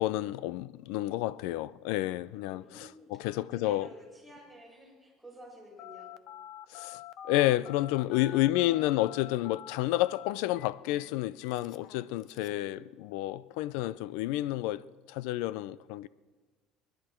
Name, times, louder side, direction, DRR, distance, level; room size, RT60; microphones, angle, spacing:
voice 1, 0.0-3.9 6.7-16.1, left 16 dB, 80° left, 0.4 m, -30 dB
voice 2, 2.3-6.2 8.1-8.8 12.3-13.0, equal, 5° left, 6.3 m, -52 dB
Telephone, 5.8-12.6, left 11 dB, 60° left, 0.8 m, -46 dB
27.0 x 11.0 x 4.4 m
cardioid pair, 120°, 0 cm